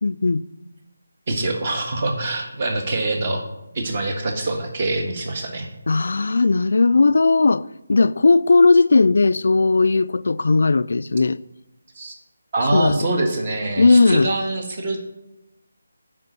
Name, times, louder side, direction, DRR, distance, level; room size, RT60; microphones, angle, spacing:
voice 1, 0.0-0.4 5.9-11.4 12.7-13.1 13.8-14.3, left 3 dB, 60° left, 0.3 m, -17 dB
voice 2, 1.3-3.4 3.7-5.7 11.9-12.1 12.5-15.0, right 2 dB, 30° right, 1.6 m, -24 dB
9.6 x 5.1 x 6.8 m
figure-of-eight pair, 170°, 0 cm